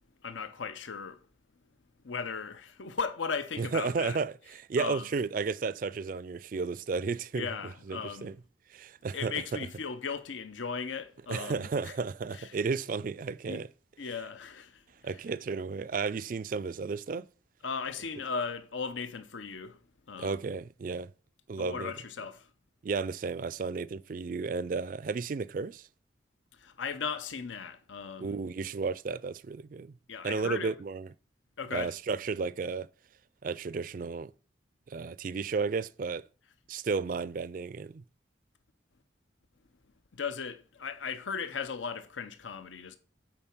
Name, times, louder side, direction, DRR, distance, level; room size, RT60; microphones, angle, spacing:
voice 1, 0.2-1.2 2.0-4.2 4.8-5.1 7.3-8.3 9.1-11.9 12.3-12.6 13.5-13.6 14.0-15.2 17.6-19.8 20.1-20.4 21.6-22.5 26.5-28.4 30.1-30.7 31.6-31.9 40.1-43.0, left 5 dB, 85° left, 0.7 m, -37 dB
voice 2, 3.6-7.5 7.9-8.3 8.7-9.6 11.3-13.7 15.0-17.3 20.2-21.1 21.5-21.9 22.8-25.9 28.2-29.9 30.2-31.1 31.7-32.9 33.4-34.3 34.9-36.2 36.7-38.0, right 4 dB, 45° right, 0.3 m, -33 dB
8.8 x 4.6 x 6.0 m
head